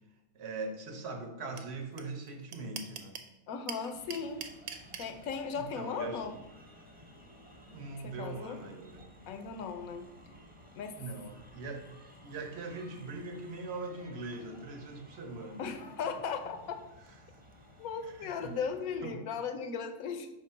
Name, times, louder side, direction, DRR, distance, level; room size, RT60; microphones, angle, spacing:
voice 1, 0.3-3.1 5.6-6.2 7.7-9.0 10.9-11.8 12.2-15.7 17.2-17.3 18.0-18.5 19.0-19.2, right 3 dB, 55° right, 5 dB, 1.0 m, -41 dB
sound 1, 1.6-1.7 2.0-2.1 2.3-3.3 3.7-5.1, right 7 dB, 75° right, 1.1 m, -40 dB
voice 2, 3.5-4.5 5.0-6.3 8.0-8.6 9.3-10.0 10.7-11.0 15.6-16.8 17.8-20.3, left 6 dB, 80° left, 8 dB, 1.1 m, -37 dB
sound 2, 3.9-19.0, equal, 10° right, 0.7 m, -55 dB
5.6 x 3.7 x 5.5 m, 0.96 s
omnidirectional pair, 1.5 m